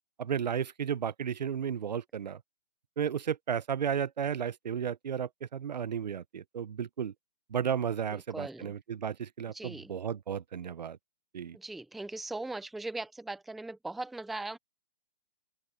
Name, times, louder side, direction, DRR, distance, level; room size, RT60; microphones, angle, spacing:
voice 1, 0.2-2.4 3.0-7.1 7.5-11.0 11.3-11.6, right 8 dB, 90° right, 0.9 m, -33 dB
voice 2, 8.1-8.7 9.5-9.9 11.5-14.6, right 2 dB, ahead, 0.5 m, -39 dB
open air
hypercardioid pair, 165°, 21 cm